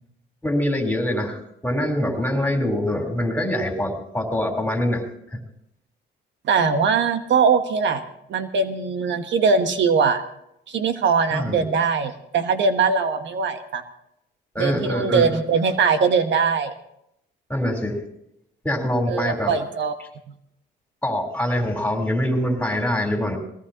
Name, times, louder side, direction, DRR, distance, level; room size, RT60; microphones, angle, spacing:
voice 1, 0.4-5.0 5.3-5.4 11.3-11.7 14.5-15.3 17.5-18.0 18.6-19.5 21.0-23.4, left 1 dB, 5° left, 1 dB, 4.0 m, -24 dB
voice 2, 6.5-8.0 8.3-10.2 10.7-13.8 14.6-16.7 19.1-19.9, right 5 dB, 70° right, 8 dB, 1.2 m, -21 dB
21.0 x 17.5 x 3.0 m, 0.77 s
cardioid pair, 90°, 20 cm